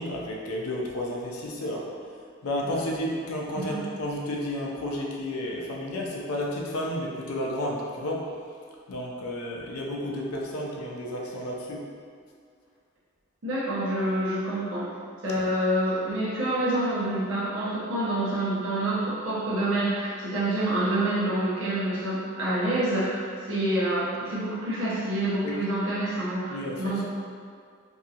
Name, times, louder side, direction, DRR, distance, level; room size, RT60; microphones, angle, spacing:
voice 1, 0.0-1.9 2.4-8.3 8.9-11.8 15.3-15.4 25.4-25.6 26.5-27.0, left 1 dB, 85° left, -2 dB, 0.5 m, -32 dB
voice 2, 13.4-15.0 15.2-27.1, right 1 dB, 60° right, -8 dB, 0.8 m, -27 dB
2.7 x 2.7 x 2.4 m, 2.1 s
head